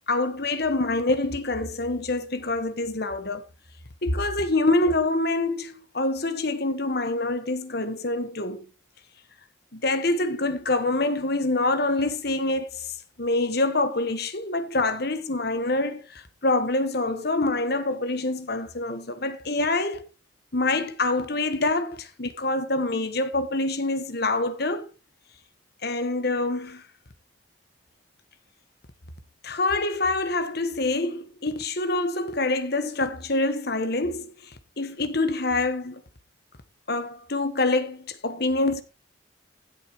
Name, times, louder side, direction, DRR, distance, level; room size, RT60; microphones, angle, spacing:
voice 1, 0.1-3.4 4.0-8.6 9.7-20.1 20.5-24.9 25.8-26.8 29.4-36.0 36.9-38.8, left 2 dB, 50° left, 1.4 m, -26 dB
16.5 x 8.1 x 3.1 m
head